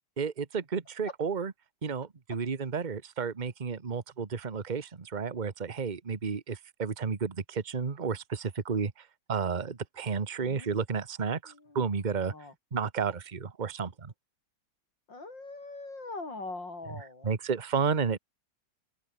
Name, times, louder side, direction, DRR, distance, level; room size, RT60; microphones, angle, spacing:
voice 1, 0.2-1.5 1.8-12.3 12.7-14.1 17.2-18.2, right 5 dB, 25° right, 1.3 m, -32 dB
voice 2, 10.4-10.8 11.5-11.9 12.2-12.5 15.1-17.3, left 3 dB, 90° left, 6.6 m, -42 dB
open air
omnidirectional pair, 1.9 m